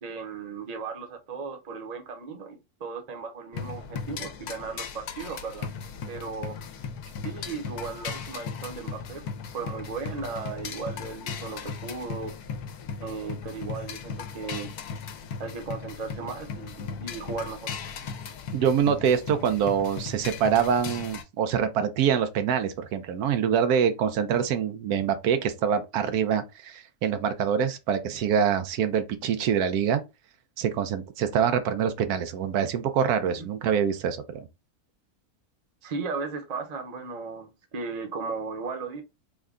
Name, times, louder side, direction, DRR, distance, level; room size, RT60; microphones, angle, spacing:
voice 1, 0.0-5.7 6.1-6.6 7.2-9.2 9.5-12.3 13.0-14.7 15.4-17.7 33.3-33.4 35.8-39.0, right 4 dB, 35° right, 0.7 m, -36 dB
sound 1, 3.5-21.2, left 6 dB, 80° left, 1.1 m, -37 dB
voice 2, 18.5-30.0 30.6-34.5, right 8 dB, 90° right, 1.2 m, -25 dB
3.6 x 2.2 x 3.6 m
omnidirectional pair, 1.6 m